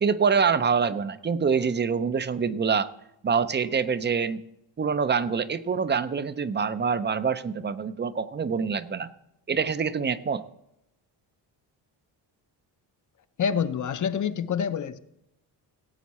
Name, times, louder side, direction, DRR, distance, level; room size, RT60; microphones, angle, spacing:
voice 1, 0.0-2.9 3.2-4.4 4.8-9.1 9.5-10.4, right 6 dB, 25° right, 0.5 m, -25 dB
voice 2, 13.4-15.0, left 7 dB, 40° left, 0.6 m, -27 dB
17.0 x 8.3 x 4.2 m
cardioid pair, 115°, 45 cm